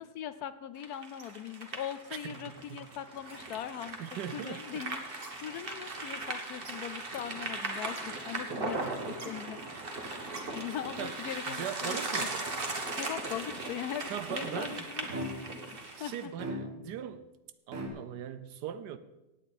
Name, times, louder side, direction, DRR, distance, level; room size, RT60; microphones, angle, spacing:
voice 1, 0.0-4.0 4.3-5.0 5.4-8.8 9.1-9.6 10.5-12.3 13.0-15.3 16.0-16.3, left 10 dB, 70° left, 13 dB, 1.1 m, -40 dB
sound 1, 0.8-16.3, right 2 dB, 35° right, 1.5 m, -38 dB
voice 2, 2.2-2.9 4.0-4.8 8.5-9.2 11.0-11.2 11.5-12.5 14.1-14.9 16.0-17.3 17.7-19.0, right 10 dB, 85° right, 13 dB, 1.3 m, -40 dB
sound 2, 15.1-15.7 16.4-17.1 17.7-17.9, equal, 55° right, 1.9 m, -38 dB
17.0 x 9.2 x 4.2 m, 1.0 s
omnidirectional pair, 1.8 m